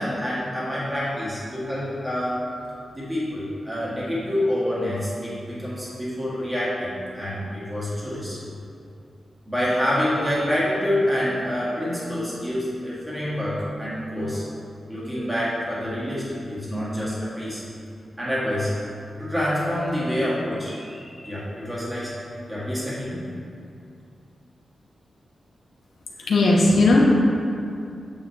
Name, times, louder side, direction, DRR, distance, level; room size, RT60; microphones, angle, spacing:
voice 1, 0.0-2.4 2.9-8.4 9.5-14.4 14.9-17.6 18.2-18.7 19.2-22.1 22.5-23.3, equal, 10° right, -9 dB, 2.1 m, -27 dB
voice 2, 26.2-27.1, left 2 dB, 80° left, -4 dB, 1.1 m, -17 dB
8.5 x 7.3 x 3.4 m, 2.4 s
wide cardioid pair, 175°, 0 cm